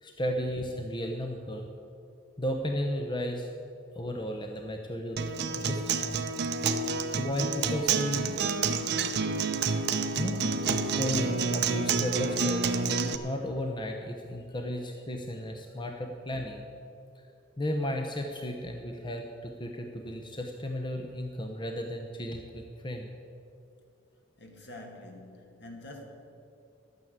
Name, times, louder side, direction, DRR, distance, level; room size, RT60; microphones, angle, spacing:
voice 1, 0.0-1.6 2.4-3.5 3.9-6.2 7.2-8.4 10.2-12.7 13.2-16.6 17.6-23.1, left 1 dB, 25° left, 0.8 m, -34 dB
Acoustic guitar, 5.2-13.2, right 4 dB, 60° right, 0.8 m, -29 dB
voice 2, 24.4-26.0, left 1 dB, 65° left, 2.2 m, -46 dB
12.5 x 9.3 x 8.0 m
head